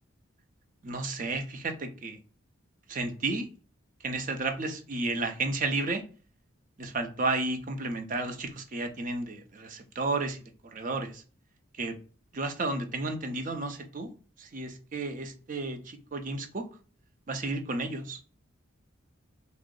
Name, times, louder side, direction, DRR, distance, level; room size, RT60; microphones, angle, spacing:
voice 1, 0.8-2.2 2.9-3.5 4.0-6.0 6.8-10.4 10.7-11.2 11.8-11.9 12.3-14.1 14.4-16.6 17.3-18.2, right 3 dB, 40° right, 6 dB, 0.6 m, -32 dB
3.5 x 2.0 x 3.7 m, 0.38 s
head